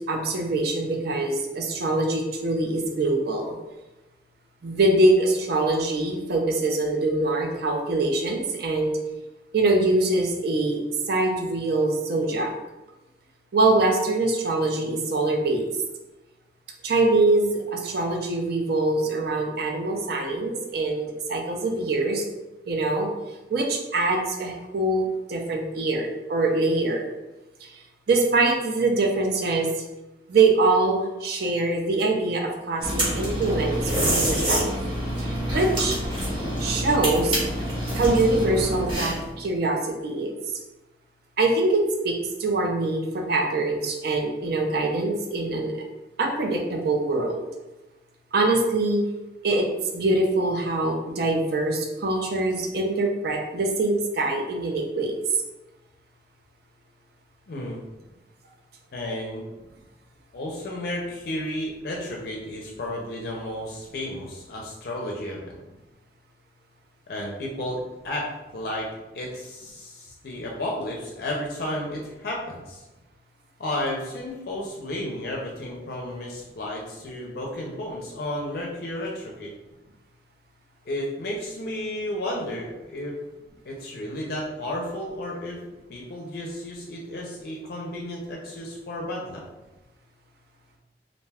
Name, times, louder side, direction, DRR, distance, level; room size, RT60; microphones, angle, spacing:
voice 1, 0.1-3.5 4.6-9.0 9.5-10.8 11.1-12.5 13.5-15.7 16.8-22.2 22.7-23.1 23.5-27.1 27.6-27.7 28.1-29.7 30.3-34.7 35.2-36.0 36.6-37.4 37.9-40.3 41.4-45.8 46.2-47.5 48.3-49.0 49.4-49.7 49.9-55.1, right 2 dB, 60° right, 2 dB, 0.4 m, -24 dB
sound 1, 32.8-39.3, equal, 30° right, 0.8 m, -26 dB
voice 2, 57.5-57.8 58.9-59.4 60.3-65.6 67.1-68.3 68.5-68.9 69.1-72.8 73.6-79.5 80.9-83.1 83.6-85.6 85.9-89.4, left 1 dB, 55° left, -2 dB, 0.4 m, -32 dB
2.5 x 2.2 x 3.3 m, 1.1 s
head